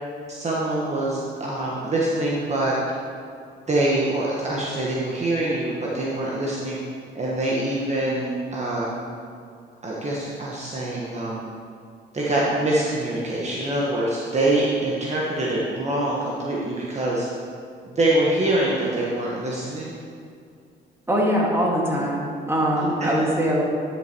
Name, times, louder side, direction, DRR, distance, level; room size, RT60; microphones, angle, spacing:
voice 1, 0.3-2.7 3.7-6.8 7.1-9.0 9.8-11.4 12.1-17.3 17.9-19.9 22.8-23.1, right 1 dB, 35° right, -5 dB, 1.5 m, -24 dB
voice 2, 21.1-23.6, equal, 10° right, -3 dB, 2.3 m, -22 dB
11.0 x 6.7 x 4.6 m, 2.3 s
cardioid pair, 90°, 20 cm